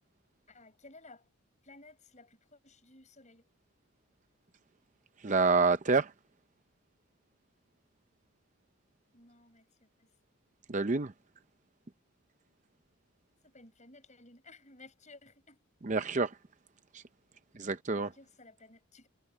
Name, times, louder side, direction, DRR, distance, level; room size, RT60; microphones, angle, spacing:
voice 1, 0.5-1.3 1.6-3.5 9.1-10.1 13.4-15.6 15.9-16.1 17.9-19.1, left 2 dB, 35° left, 7.6 m, -56 dB
voice 2, 5.2-6.1 10.7-11.1 15.8-16.3 16.9-17.0 17.6-18.1, right 4 dB, 35° right, 0.6 m, -27 dB
head